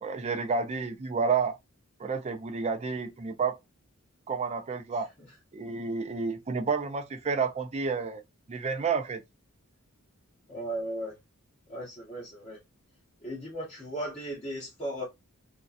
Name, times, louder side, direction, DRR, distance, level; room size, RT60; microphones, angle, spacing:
voice 1, 0.0-1.6 2.0-3.6 4.3-5.1 5.5-8.2 8.5-9.2, right 5 dB, 30° right, 0.4 m, -30 dB
voice 2, 10.5-11.2 11.7-12.6 13.2-15.0, right 1 dB, 30° left, 0.7 m, -36 dB
2.5 x 2.2 x 2.3 m
head